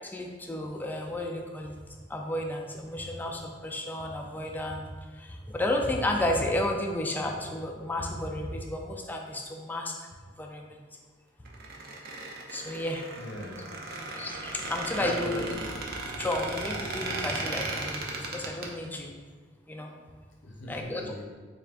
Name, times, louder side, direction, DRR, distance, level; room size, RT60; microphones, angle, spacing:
voice 1, 0.0-4.9 5.2-9.9 10.4-10.8 12.5-13.1 14.2-15.4 16.2-19.1 19.7-19.9 20.7-21.1, left 1 dB, 10° left, 1 dB, 0.3 m, -32 dB
Squeak, 11.4-18.7, right 2 dB, 55° right, 0.5 m, -36 dB
voice 2, 13.2-14.0 14.9-15.6 20.4-21.2, left 1 dB, 90° left, -2 dB, 0.7 m, -39 dB
4.1 x 3.3 x 2.4 m, 1.5 s
head